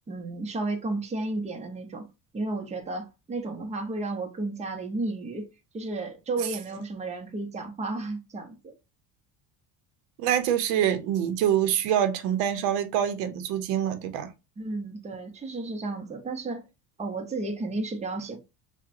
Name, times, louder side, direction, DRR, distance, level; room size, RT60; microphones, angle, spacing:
voice 1, 0.1-2.1 2.3-8.7 14.6-16.7 17.0-18.4, right 2 dB, 15° right, 0.7 m, -33 dB
voice 2, 10.2-14.3, right 10 dB, 90° right, 0.8 m, -25 dB
5.7 x 2.2 x 2.5 m
cardioid pair, 120°, 41 cm